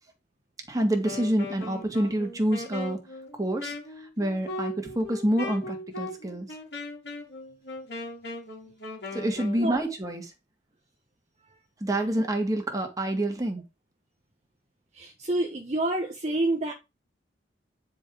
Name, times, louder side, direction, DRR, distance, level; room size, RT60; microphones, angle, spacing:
voice 1, 0.7-3.0 3.4-3.7 4.2-6.5 9.1-10.3 11.8-13.6, right 1 dB, 20° right, 2.0 m, -27 dB
Wind instrument woodwind instrument, 0.9-9.7, left 2 dB, 65° left, 2.8 m, -38 dB
voice 2, 15.0-16.7, right 2 dB, 40° right, 1.1 m, -28 dB
9.5 x 4.9 x 3.9 m
head